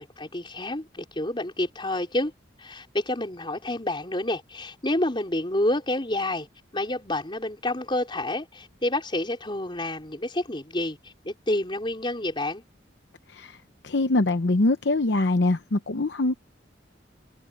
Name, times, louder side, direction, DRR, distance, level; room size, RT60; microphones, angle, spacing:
voice 1, 0.0-2.3 2.6-6.5 6.7-12.6, left 1 dB, 25° left, 4.2 m, -29 dB
voice 2, 13.8-16.4, left 2 dB, 65° left, 0.8 m, -23 dB
head